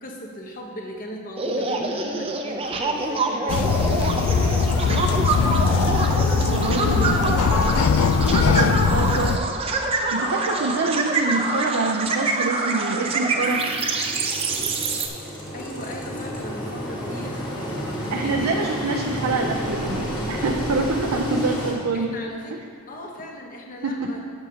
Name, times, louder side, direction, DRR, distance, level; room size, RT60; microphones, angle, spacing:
voice 1, 0.0-4.3 4.6-6.3 8.3-9.2 10.7-11.0 15.5-17.5 18.2-18.9 21.4-21.5 21.9-24.3, equal, 40° left, 0 dB, 1.1 m, -38 dB
sound 1, 1.4-15.1, right 3 dB, 25° right, 0.6 m, -25 dB
sound 2, 3.5-9.4, left 5 dB, 75° left, 0.3 m, -20 dB
voice 2, 6.5-7.8 8.4-9.5 10.1-13.8 18.1-22.1 23.8-24.1, right 3 dB, 80° right, 2 dB, 0.6 m, -26 dB
Engine, 13.3-21.7, equal, 20° left, 1.5 m, -30 dB
12.0 x 7.7 x 2.8 m, 2.1 s
head